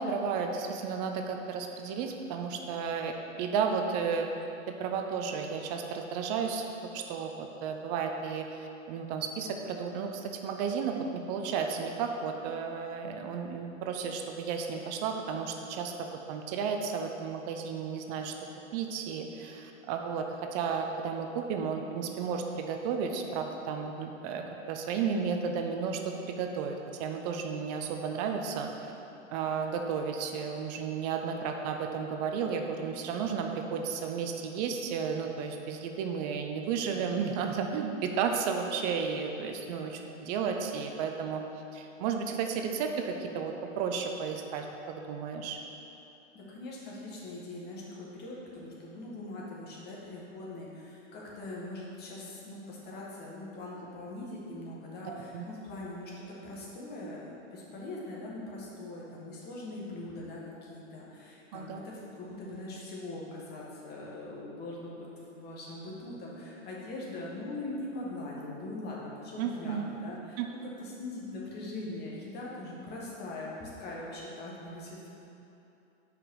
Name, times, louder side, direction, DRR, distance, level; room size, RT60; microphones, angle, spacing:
voice 1, 0.0-4.4 4.7-6.7 6.9-15.9 16.3-18.3 18.7-20.3 20.5-28.9 29.3-41.4 41.7-45.6 55.1-55.5 61.5-61.8 69.4-69.9 70.4-70.5, right 6 dB, 30° right, 4 dB, 0.5 m, -33 dB
voice 2, 46.3-70.4 70.8-75.0, left 2 dB, 25° left, -4 dB, 1.7 m, -41 dB
5.8 x 5.1 x 6.3 m, 2.9 s
hypercardioid pair, 120°, 39 cm